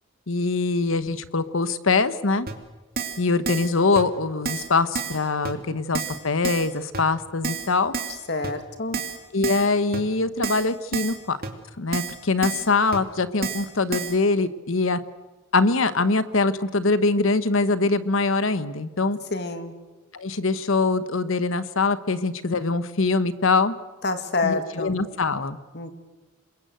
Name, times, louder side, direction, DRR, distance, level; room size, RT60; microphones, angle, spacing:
voice 1, 0.3-2.5 3.2-7.9 9.3-11.4 11.8-15.0 15.5-19.2 20.1-23.7 24.4-25.6, left 3 dB, 70° left, 14 dB, 1.1 m, -23 dB
Keyboard (musical), 2.5-2.6 3.0-3.2 3.5-3.7 4.0-4.1 4.5-4.7 5.0-5.2 5.5-5.6 5.9-6.2 6.4-6.7 6.9-7.0 7.4-7.7 7.9-8.2 8.4-8.5 8.9-9.2 9.4-9.7 9.9-10.0 10.4-10.7 10.9-11.2 11.4-11.5 11.9-12.2 12.4-12.7 12.9-13.0 13.4-13.7 13.9-14.1, right 5 dB, 45° right, 2.6 m, -29 dB
voice 2, 8.3-9.0 19.3-19.7 24.0-25.0 25.7-25.9, left 3 dB, 50° left, 8 dB, 2.2 m, -27 dB
26.5 x 22.0 x 7.9 m, 1.2 s
head